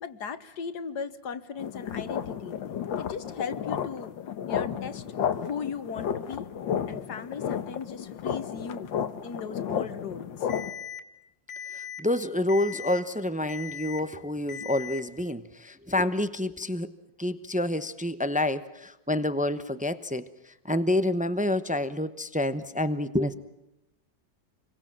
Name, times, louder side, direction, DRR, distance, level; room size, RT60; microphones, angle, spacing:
voice 1, 0.0-2.6 3.0-4.1 4.5-5.0 5.4-6.5 6.9-8.9 9.2-10.5, left 6 dB, 60° left, 11 dB, 1.8 m, -37 dB
sound 1, 1.6-10.7, left 8 dB, 80° left, 1.9 m, -32 dB
Alarm, 10.5-11.0 11.5-12.0 12.5-13.0 13.5-14.0 14.5-15.0, left 8 dB, 40° left, 2.4 m, -39 dB
voice 2, 11.7-16.9 17.2-23.3, left 1 dB, 10° right, 11 dB, 0.3 m, -28 dB
28.0 x 22.5 x 7.5 m, 0.90 s
omnidirectional pair, 2.0 m